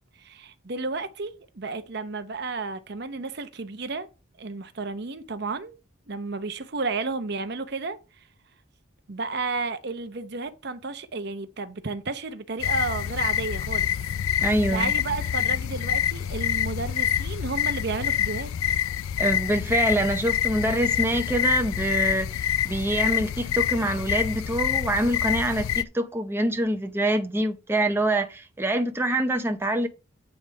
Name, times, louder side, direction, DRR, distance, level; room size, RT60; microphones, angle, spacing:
voice 1, 0.2-4.1 4.4-5.8 6.1-8.0 9.1-13.9 14.7-18.5, right 3 dB, 55° right, 0.8 m, -32 dB
sound 1, 12.6-25.8, left 10 dB, 85° left, 0.4 m, -27 dB
voice 2, 14.4-14.9 19.2-29.9, right 1 dB, 10° right, 0.7 m, -25 dB
9.2 x 3.5 x 6.3 m
head